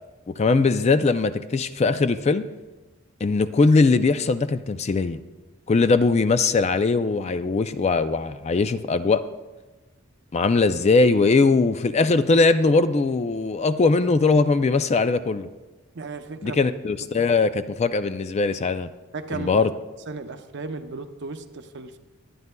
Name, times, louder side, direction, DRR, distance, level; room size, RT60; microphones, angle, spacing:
voice 1, 0.3-2.4 3.2-5.2 5.7-9.2 10.3-15.5 16.4-18.9 19.3-19.7, left 3 dB, 30° left, 12 dB, 0.3 m, -20 dB
voice 2, 16.0-16.6 19.1-19.6 20.1-22.0, right 3 dB, 55° right, 8 dB, 0.7 m, -35 dB
22.5 x 9.4 x 2.2 m, 1.2 s
head